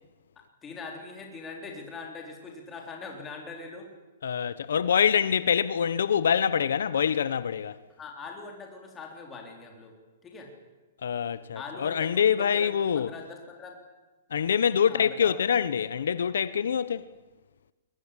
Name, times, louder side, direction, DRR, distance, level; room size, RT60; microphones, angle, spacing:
voice 1, 0.4-3.9 8.0-9.9 10.2-10.5 11.5-13.8 14.8-15.4, left 4 dB, 10° left, 3.9 m, -42 dB
voice 2, 4.2-7.8 11.0-13.1 14.3-17.1, left 7 dB, 80° left, 1.0 m, -25 dB
22.5 x 19.5 x 9.9 m
hypercardioid pair, 175°, 0 cm